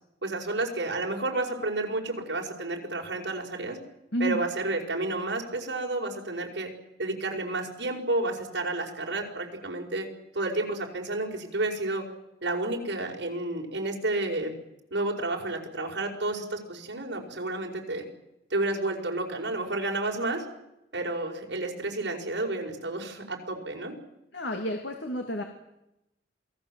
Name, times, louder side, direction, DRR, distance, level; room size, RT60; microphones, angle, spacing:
voice 1, 0.2-3.8 4.2-6.7 7.0-10.1 10.3-12.0 12.4-14.5 14.9-18.0 18.5-20.4 20.9-23.9, right 2 dB, 75° right, 1 dB, 5.0 m, -31 dB
voice 2, 4.1-4.4 24.3-25.4, equal, 75° left, 4 dB, 2.6 m, -30 dB
27.5 x 19.0 x 7.7 m, 0.88 s
head